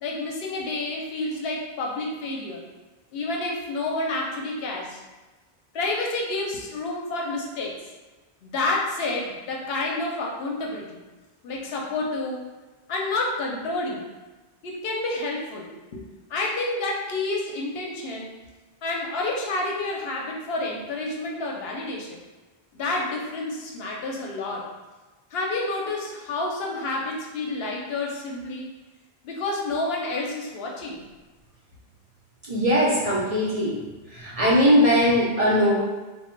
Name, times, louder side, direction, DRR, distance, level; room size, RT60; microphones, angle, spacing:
voice 1, 0.0-2.6 3.1-5.0 5.7-7.8 8.4-11.0 11.4-12.5 12.9-14.1 14.6-16.0 16.3-18.3 18.8-22.2 22.7-24.7 25.3-28.7 29.2-31.0, left 2 dB, 75° left, -1 dB, 0.8 m, -29 dB
voice 2, 32.5-33.8 34.1-35.8, equal, 45° right, -6 dB, 0.5 m, -20 dB
2.1 x 2.1 x 3.7 m, 1.2 s
omnidirectional pair, 1.0 m